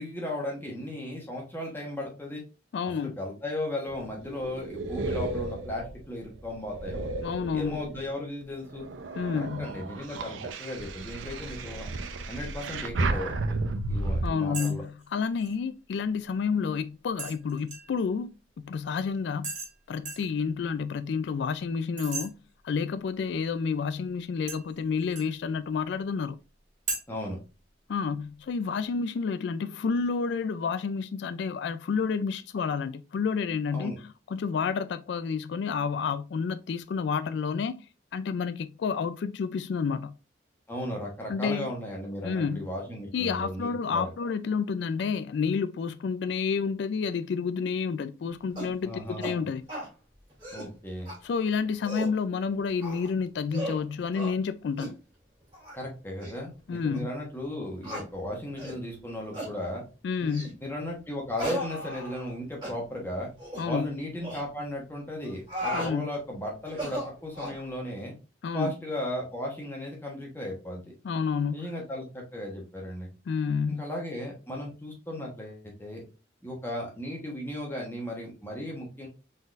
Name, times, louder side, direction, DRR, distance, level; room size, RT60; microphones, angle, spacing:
voice 1, 0.0-2.4 3.0-7.1 7.5-8.9 9.3-11.9 12.3-13.6 13.9-14.8 27.1-27.4 33.7-34.0 40.7-44.1 48.8-49.4 50.5-51.1 55.8-59.8 60.2-63.3 63.6-68.1 68.5-70.9 71.5-73.1 73.7-76.0 76.4-79.1, left 1 dB, 10° left, 1.1 m, -36 dB
voice 2, 2.7-3.2 7.2-7.8 9.2-9.7 14.2-18.3 18.6-19.5 19.9-22.3 22.6-26.4 27.9-33.9 34.3-37.8 38.1-40.1 41.3-41.7 42.2-42.7 43.1-49.6 51.2-55.0 56.7-57.1 60.0-60.5 63.6-63.9 65.7-66.1 68.4-68.7 71.0-71.7 73.3-73.8, left 5 dB, 65° left, 0.3 m, -30 dB
sound 1, 3.9-8.1 8.6-14.3, right 2 dB, 85° right, 0.5 m, -33 dB
sound 2, 14.5-14.8 15.0-15.5 17.2-18.0 19.4-19.7 20.1-20.3 22.0-22.3 24.5-25.4 26.9-27.0, right 4 dB, 40° right, 1.7 m, -36 dB
sound 3, 48.6-48.8 49.2-49.4 49.7-49.9 50.3-50.7 51.1-51.2 51.7-52.2 52.8-53.1 53.5-53.8 54.1-54.3 54.8-55.0 55.5-55.8 56.2-56.3 56.9-57.0 57.8-58.1 58.6-58.8 59.3-59.5 60.3-60.6 61.4-62.3 62.6-62.8 63.4-63.7 64.2-64.4 65.2-65.9 66.7-67.6, equal, 25° right, 2.5 m, -36 dB
4.0 x 4.0 x 2.4 m
head